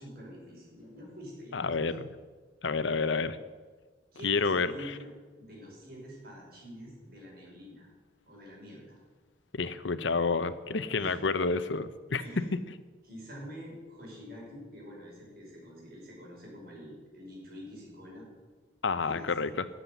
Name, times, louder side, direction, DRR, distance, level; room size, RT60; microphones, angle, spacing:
voice 1, 0.0-1.9 4.1-5.1 5.4-7.9 8.3-9.0 11.0-11.2 12.2-12.5 13.0-18.3 19.0-19.3, equal, 55° right, -3 dB, 6.0 m, -46 dB
voice 2, 1.5-2.1 2.6-3.4 4.2-4.9 9.5-12.6 18.8-19.7, left 4 dB, 85° left, 13 dB, 0.8 m, -29 dB
13.5 x 7.6 x 9.3 m, 1.4 s
head